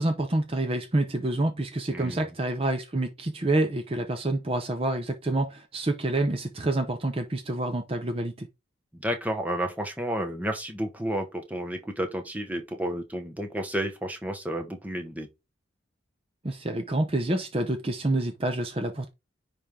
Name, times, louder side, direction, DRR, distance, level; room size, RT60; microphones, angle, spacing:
voice 1, 0.0-8.5 16.4-19.1, right 2 dB, 30° right, 0.7 m, -27 dB
voice 2, 1.9-2.3 8.9-15.3, right 1 dB, 10° right, 1.1 m, -31 dB
10.0 x 3.4 x 3.7 m
head